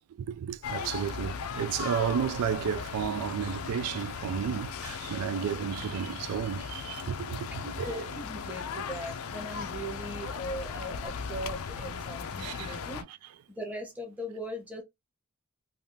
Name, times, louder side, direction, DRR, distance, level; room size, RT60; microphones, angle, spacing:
voice 1, 0.2-8.0 12.4-12.8, right 8 dB, 90° right, 0.3 m, -32 dB
sound 1, 0.6-13.0, left 6 dB, 70° left, 0.4 m, -37 dB
voice 2, 7.5-13.0 13.5-14.8, equal, 5° right, 0.9 m, -39 dB
3.4 x 2.4 x 2.7 m
head